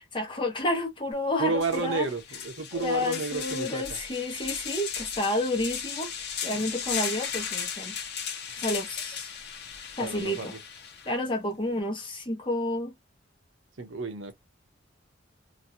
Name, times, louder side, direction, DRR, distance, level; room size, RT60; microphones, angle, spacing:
voice 1, 0.1-2.1 2.7-7.9 8.6-9.3 10.0-10.5 11.1-12.9, left 1 dB, 25° left, 1.1 m, -30 dB
sound 1, 1.1-1.2 1.6-11.1, left 7 dB, 60° left, 0.9 m, -36 dB
voice 2, 1.4-4.0 10.0-10.5 13.8-14.3, right 3 dB, 75° right, 0.9 m, -31 dB
3.1 x 2.6 x 2.7 m
head